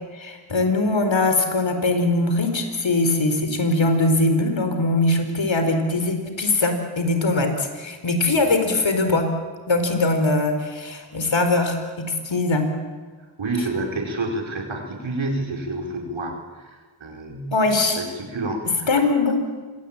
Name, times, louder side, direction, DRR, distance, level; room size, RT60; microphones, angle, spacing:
voice 1, 0.1-9.3 9.7-12.7 17.5-18.0 18.9-19.4, left 2 dB, 75° left, 6 dB, 4.5 m, -21 dB
voice 2, 13.4-17.5 17.9-18.9, right 2 dB, 80° right, 2 dB, 4.7 m, -29 dB
26.5 x 21.5 x 8.9 m, 1.4 s
cardioid pair, 50°, 46 cm